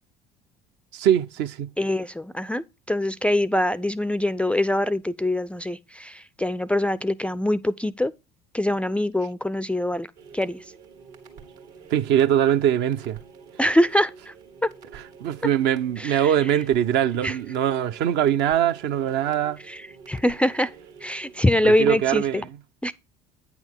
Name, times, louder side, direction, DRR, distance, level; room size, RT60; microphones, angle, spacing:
voice 1, 0.9-1.7 11.9-13.2 14.9-19.6 21.6-22.6, right 10 dB, 55° right, 0.6 m, -22 dB
voice 2, 1.8-8.1 8.5-10.1 10.3-10.6 13.6-14.3 16.0-16.3 17.2-17.4 19.7-20.7 21.0-22.4 22.8-22.9, left 1 dB, 5° left, 0.4 m, -24 dB
sound 1, 10.2-21.7, right 5 dB, 70° right, 1.7 m, -48 dB
9.0 x 6.1 x 3.5 m
figure-of-eight pair, 60°, 21 cm